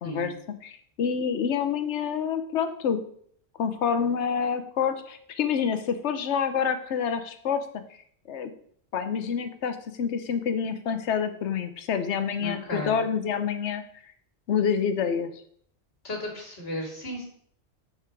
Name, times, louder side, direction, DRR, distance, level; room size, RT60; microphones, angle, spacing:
voice 1, 0.0-3.0 3.6-7.6 8.3-8.5 8.9-13.8 14.5-15.3, left 7 dB, 80° left, 9 dB, 1.1 m, -27 dB
voice 2, 12.4-13.0 16.0-17.2, left 1 dB, 60° left, 0 dB, 2.5 m, -34 dB
7.9 x 4.6 x 4.5 m, 0.62 s
omnidirectional pair, 1.2 m